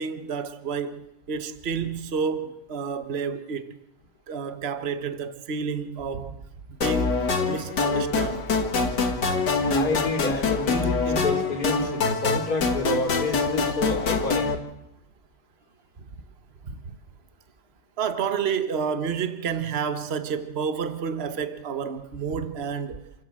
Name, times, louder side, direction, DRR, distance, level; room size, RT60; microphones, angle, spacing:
voice 1, 0.0-3.8 4.3-6.4 6.7-7.1 7.5-8.5 16.7-16.8 18.0-23.0, right 6 dB, 40° right, 1.4 m, -30 dB
sound 1, 6.8-14.5, left 4 dB, 80° left, 2.4 m, -25 dB
voice 2, 9.7-14.5, left 3 dB, 65° left, 3.5 m, -29 dB
28.0 x 16.0 x 7.6 m
omnidirectional pair, 1.8 m